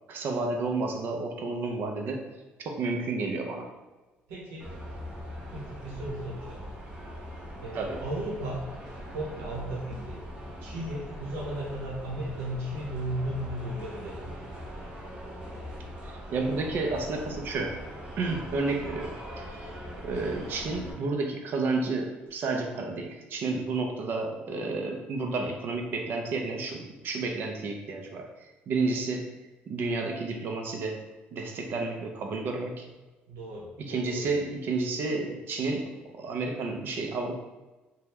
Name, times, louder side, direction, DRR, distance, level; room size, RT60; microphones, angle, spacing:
voice 1, 0.1-2.2 2.6-3.7 7.7-8.0 16.0-17.8 18.2-19.7 20.0-29.3 29.7-31.0 31.3-32.9 33.8-37.4, right 3 dB, 55° right, 3 dB, 0.5 m, -31 dB
voice 2, 4.3-4.7 5.5-6.6 7.6-8.6 9.1-10.2 10.6-14.4 33.3-34.3, right 1 dB, 90° right, -3 dB, 0.9 m, -35 dB
sound 1, 4.6-20.9, equal, 20° right, 0.8 m, -41 dB
2.8 x 2.2 x 3.4 m, 1.2 s
cardioid pair, 105°, 4 cm